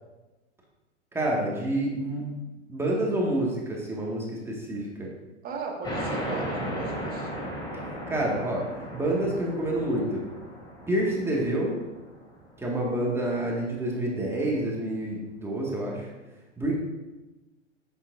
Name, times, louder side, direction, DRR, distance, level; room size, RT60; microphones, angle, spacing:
voice 1, 1.1-2.3 2.7-5.1 8.1-8.6 8.9-10.2 10.9-11.8 12.6-16.1 16.6-16.7, right 1 dB, 5° right, -3 dB, 1.9 m, -28 dB
voice 2, 5.4-7.3, right 4 dB, 25° right, 0 dB, 1.8 m, -36 dB
sound 1, 5.8-13.0, equal, 10° left, 2.4 m, -36 dB
10.5 x 8.0 x 2.6 m, 1.1 s
figure-of-eight pair, 100°, 35 cm